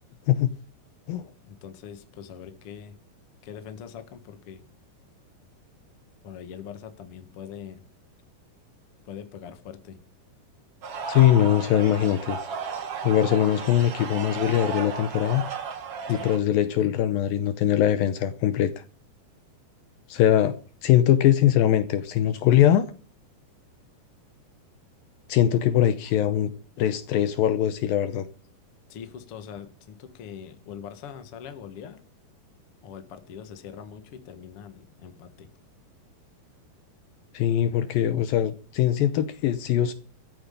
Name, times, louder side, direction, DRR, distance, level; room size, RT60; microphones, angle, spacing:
voice 1, 1.5-3.0 3.4-4.6 6.2-7.8 9.0-10.0 16.1-16.3 16.8-16.9 28.9-32.0 32.8-35.5, left 8 dB, 55° left, 1.5 m, -42 dB
sound 1, 10.8-16.4, right 5 dB, 45° right, 2.1 m, -34 dB
voice 2, 11.1-12.4 13.0-15.4 16.1-18.7 20.1-22.9 25.3-26.5 26.8-28.3 37.3-39.9, left 11 dB, 80° left, 2.1 m, -22 dB
14.5 x 9.5 x 6.7 m
omnidirectional pair, 5.1 m